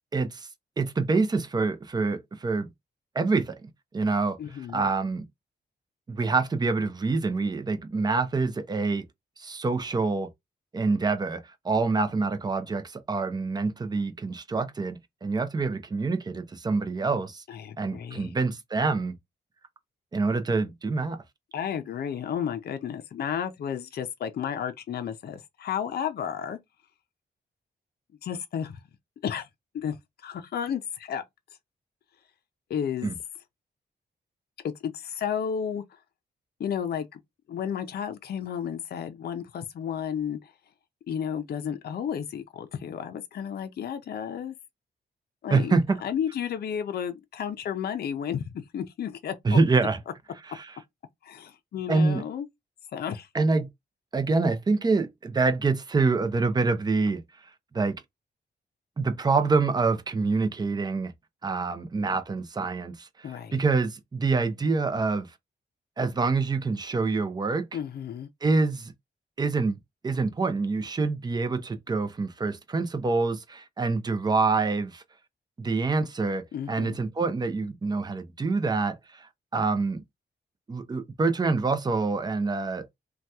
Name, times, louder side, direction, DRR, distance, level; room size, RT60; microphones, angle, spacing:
voice 1, 0.1-0.5 0.8-2.7 3.1-3.6 3.9-4.4 4.7-5.3 6.1-9.0 9.4-10.3 10.7-17.4 17.8-19.2 20.1-21.2 33.0-33.2 45.5-46.0 49.4-50.0 50.5-50.7 51.9-52.2 53.3-53.7 54.1-57.2 57.7-58.0 59.0-61.1 61.4-63.1 63.5-65.3 66.0-67.7 68.4-68.9 69.4-69.8 70.0-75.0 75.6-80.0 80.7-82.9, right 4 dB, 20° right, 0.5 m, -26 dB
voice 2, 4.4-4.8 17.5-18.3 21.5-26.6 28.2-28.8 29.2-29.5 29.7-30.0 30.2-31.2 32.7-33.1 34.6-35.8 36.6-37.2 37.5-40.5 41.1-44.5 45.4-45.7 46.0-49.6 51.2-52.5 52.9-53.3 63.2-63.6 67.7-68.3 76.5-77.0, left 8 dB, 60° left, 0.5 m, -32 dB
2.8 x 2.2 x 3.4 m
wide cardioid pair, 135°, 18 cm